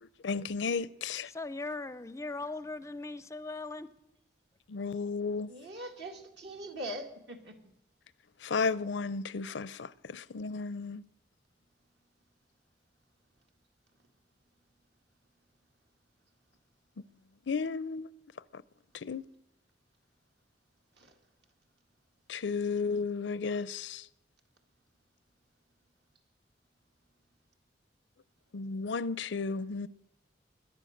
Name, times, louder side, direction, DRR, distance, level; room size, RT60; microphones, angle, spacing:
voice 1, 0.0-1.3 4.7-5.5 8.4-11.0 17.5-18.1 18.5-18.6 18.9-19.2 22.3-24.1 28.5-29.9, left 4 dB, 80° left, 0.5 m, -33 dB
voice 2, 1.3-3.9, left 3 dB, 15° left, 0.5 m, -39 dB
voice 3, 5.5-7.6 21.0-21.1, right 1 dB, 65° right, 2.0 m, -42 dB
21.5 x 10.5 x 6.5 m
head